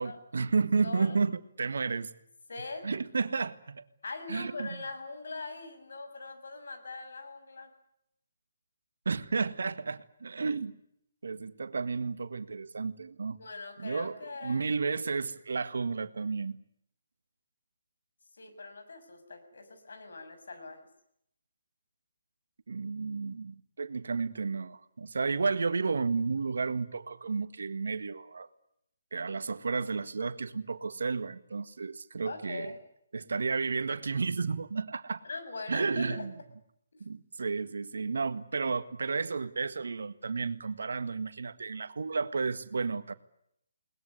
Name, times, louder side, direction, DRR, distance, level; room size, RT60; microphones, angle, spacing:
voice 1, 0.0-2.1 2.8-3.8 4.3-4.7 9.0-10.8 11.2-13.4 13.8-14.2 14.4-16.6 22.7-28.5 29.1-32.7 33.1-35.2 35.7-36.3 37.0-43.1, right 4 dB, 75° right, 11 dB, 1.7 m, -32 dB
voice 2, 0.8-1.2 2.5-2.9 4.0-7.7 13.3-14.6 18.4-20.9 32.2-32.8 35.2-36.3, left 3 dB, 70° left, 7 dB, 6.8 m, -41 dB
21.5 x 20.0 x 9.7 m, 0.74 s
figure-of-eight pair, 150°, 0 cm